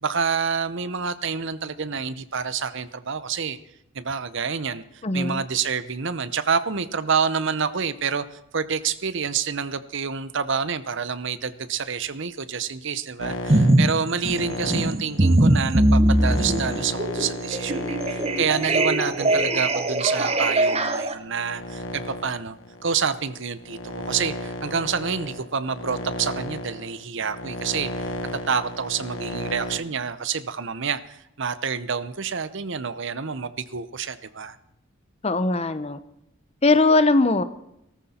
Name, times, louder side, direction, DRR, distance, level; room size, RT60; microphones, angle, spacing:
voice 1, 0.0-3.6 3.9-4.8 5.1-22.6 22.8-28.1 28.5-34.6, right 6 dB, 60° right, 14 dB, 0.8 m, -28 dB
voice 2, 5.0-5.4 35.2-36.0 36.6-37.4, left 3 dB, 30° left, 13 dB, 0.8 m, -20 dB
sound 1, 13.2-20.6 21.2-29.8, left 1 dB, 65° left, 1.6 m, -34 dB
sound 2, 13.5-13.9 14.3-21.1, right 1 dB, 30° right, 1.0 m, -21 dB
18.0 x 14.0 x 4.4 m, 0.80 s
head